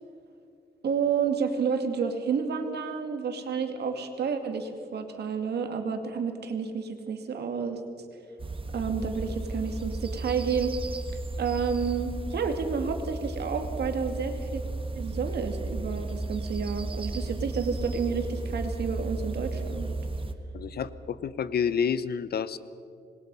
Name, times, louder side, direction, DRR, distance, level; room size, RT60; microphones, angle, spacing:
voice 1, 0.8-7.8 8.7-10.7 11.4-14.6 14.9-19.9, right 6 dB, 80° right, 5 dB, 2.4 m, -30 dB
sound 1, 8.4-20.3, right 2 dB, 30° right, 1.3 m, -34 dB
voice 2, 20.5-22.6, left 7 dB, 70° left, 15 dB, 0.9 m, -29 dB
26.0 x 21.0 x 5.6 m, 2.5 s
wide cardioid pair, 110°, 17 cm